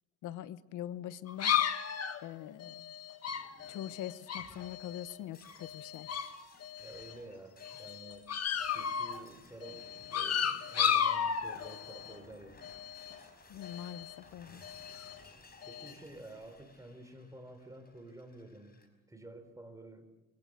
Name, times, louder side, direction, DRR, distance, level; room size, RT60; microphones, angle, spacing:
voice 1, 0.2-1.5 2.2-2.9 3.7-6.1 13.5-14.6, left 11 dB, 90° left, 15 dB, 1.0 m, -43 dB
sound 1, 1.3-5.2 5.5-6.3 6.6-7.2 7.6-9.2 9.6-12.2 12.6-13.2 13.6-14.2 14.6-15.2 15.6-15.9, left 8 dB, 55° left, 1.7 m, -34 dB
Shatter, 3.3-18.9, left 3 dB, 30° left, 5.5 m, -59 dB
voice 2, 6.8-8.3 8.7-12.7 15.7-20.1, right 1 dB, 10° right, 7 dB, 4.3 m, -51 dB
23.5 x 17.5 x 7.7 m, 1.1 s
cardioid pair, 90°, 30 cm